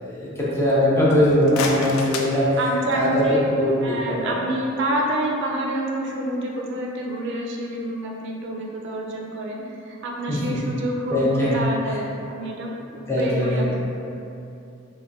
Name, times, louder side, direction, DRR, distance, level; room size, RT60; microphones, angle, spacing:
voice 1, 0.0-2.5 2.9-3.1 3.6-4.0 4.2-4.3 10.3-10.6 11.1-11.5 13.1-13.8, left 1 dB, 15° left, -8 dB, 0.6 m, -21 dB
sound 1, 1.3-3.2, left 3 dB, 85° left, 0.3 m, -31 dB
voice 2, 2.6-3.4 3.8-12.7 13.2-13.8, right 1 dB, 60° right, -1 dB, 0.4 m, -27 dB
3.5 x 2.1 x 2.6 m, 2.7 s
head